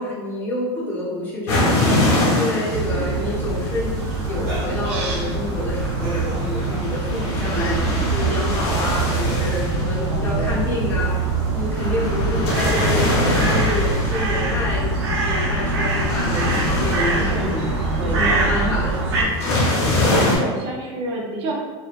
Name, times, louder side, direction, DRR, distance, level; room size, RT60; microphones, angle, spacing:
voice 1, 0.0-3.9 4.2-17.7 18.0-19.4, left 2 dB, 15° left, -7 dB, 0.9 m, -28 dB
sound 1, 1.5-20.4, left 1 dB, 70° left, 0.9 m, -25 dB
sound 2, 1.8-2.0 2.9-3.2 4.3-4.8 5.9-6.4 7.5-7.9 9.2-9.6 10.8-11.1 12.2-12.4 13.4-13.9 15.5-15.7 16.7-16.8 17.5-17.8 18.5-18.7 20.3-20.7, right 1 dB, 65° right, 1.1 m, -35 dB
sound 3, 2.7-19.2, right 3 dB, 85° right, 0.7 m, -23 dB
voice 2, 10.0-10.7 17.1-18.5 20.2-21.5, right 1 dB, 40° right, -1 dB, 0.6 m, -29 dB
2.7 x 2.2 x 2.4 m, 1.4 s
supercardioid pair, 125°, 14 cm